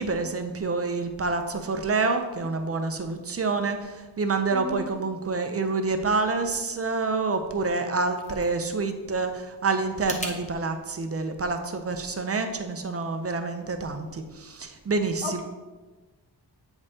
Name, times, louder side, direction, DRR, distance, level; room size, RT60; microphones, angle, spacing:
voice 1, 0.0-15.4, right 3 dB, 35° right, 7 dB, 0.5 m, -27 dB
voice 2, 4.5-4.9 15.2-15.4, left 2 dB, 90° left, 2 dB, 1.1 m, -33 dB
sound 1, 7.7-10.4, left 1 dB, 20° left, 0.7 m, -40 dB
8.0 x 5.2 x 2.7 m, 1.2 s
wide cardioid pair, 145°, 41 cm